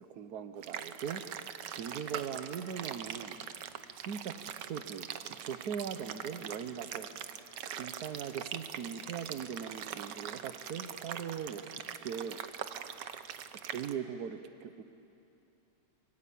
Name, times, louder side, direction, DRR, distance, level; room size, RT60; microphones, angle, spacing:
voice 1, 0.1-1.2 1.7-3.4 4.0-7.2 7.7-12.6 13.6-14.8, right 7 dB, 65° right, 10 dB, 1.4 m, -40 dB
sound 1, 0.6-13.9, right 9 dB, 85° right, 1.5 m, -42 dB
25.5 x 23.0 x 8.5 m, 2.8 s
omnidirectional pair, 1.8 m